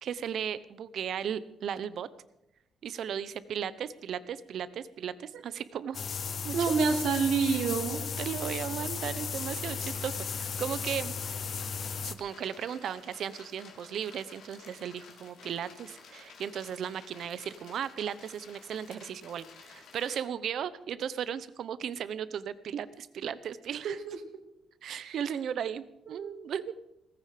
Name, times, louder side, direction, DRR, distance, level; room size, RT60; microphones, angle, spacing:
voice 1, 0.0-2.1 2.8-6.0 6.4-6.7 8.2-11.1 12.0-24.0 24.8-26.7, right 8 dB, 55° right, 16 dB, 0.9 m, -36 dB
sound 1, 5.9-12.1, left 6 dB, 40° left, 0.8 m, -35 dB
voice 2, 6.5-8.0 23.8-24.2 25.0-25.2 26.1-26.4, right 5 dB, 75° right, 4 dB, 2.6 m, -28 dB
sound 2, 9.5-20.2, left 5 dB, 65° left, 3.2 m, -53 dB
18.0 x 15.0 x 5.1 m, 0.84 s
cardioid pair, 175°, 0 cm